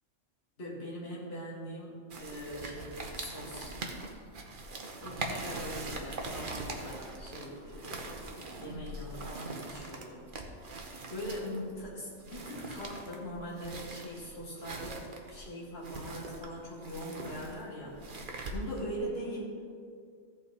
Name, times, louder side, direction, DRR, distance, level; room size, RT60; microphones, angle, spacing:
voice 1, 0.6-3.8 5.0-8.3 8.6-10.2 11.1-18.0 18.5-19.7, equal, 55° left, -6 dB, 2.4 m, -41 dB
sound 1, 2.1-19.0, right 2 dB, 45° right, 1.0 m, -42 dB
14.5 x 5.7 x 4.1 m, 2.2 s
omnidirectional pair, 1.2 m